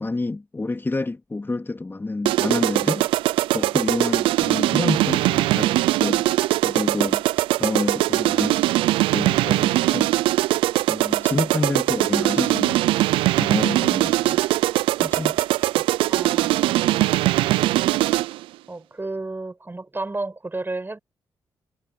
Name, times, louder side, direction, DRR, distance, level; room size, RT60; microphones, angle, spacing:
voice 1, 0.0-3.1 3.5-6.3 6.6-7.2 7.6-8.6 9.1-10.2 10.9-13.1 13.3-14.5 15.0-15.4 15.8-15.9, left 3 dB, 25° left, 3.4 m, -28 dB
sound 1, 2.3-18.4, right 16 dB, 85° right, 0.4 m, -21 dB
voice 2, 16.1-17.0 18.7-21.0, right 2 dB, 25° right, 7.2 m, -32 dB
supercardioid pair, 55°, 9 cm